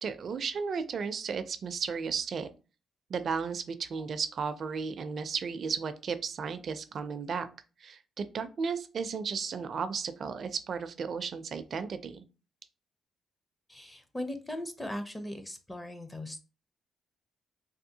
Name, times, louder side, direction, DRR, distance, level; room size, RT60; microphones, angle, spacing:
voice 1, 0.0-2.5 3.1-7.5 7.8-12.3, right 5 dB, 55° right, 11 dB, 0.4 m, -34 dB
voice 2, 13.7-16.4, left 1 dB, 15° left, 8 dB, 0.5 m, -39 dB
3.5 x 2.4 x 2.7 m, 0.34 s
cardioid pair, 90°, 0 cm